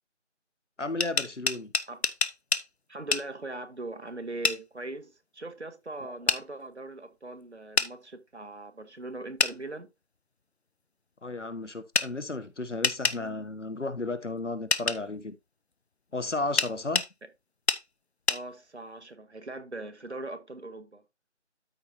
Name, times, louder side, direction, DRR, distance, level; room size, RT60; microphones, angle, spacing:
voice 1, 0.8-1.7 6.0-6.1 11.2-15.3 16.1-17.0, left 2 dB, 90° left, 1.3 m, -33 dB
sound 1, 0.8-2.7 3.1-3.3 4.4-4.6 6.3-6.4 7.8-7.9 9.4-9.6 11.9-12.1 12.8-13.2 14.7-15.0 16.6-17.1 17.7-17.8 18.3-18.4, left 4 dB, 65° left, 0.7 m, -26 dB
voice 2, 2.9-9.9 18.3-21.0, right 2 dB, 70° right, 1.3 m, -40 dB
13.0 x 4.6 x 2.6 m
figure-of-eight pair, 175°, 35 cm